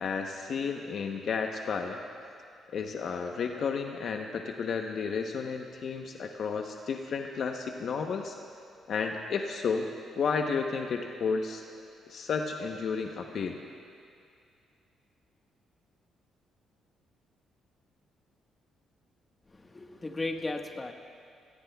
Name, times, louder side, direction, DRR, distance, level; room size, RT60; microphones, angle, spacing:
voice 1, 0.0-2.0 2.7-8.3 8.9-9.9 10.2-11.6 12.1-13.6, left 5 dB, 60° left, 3 dB, 0.9 m, -32 dB
voice 2, 19.5-20.9, left 2 dB, 25° left, 3 dB, 1.4 m, -35 dB
28.0 x 18.0 x 2.3 m, 2.4 s
cardioid pair, 90°, 0 cm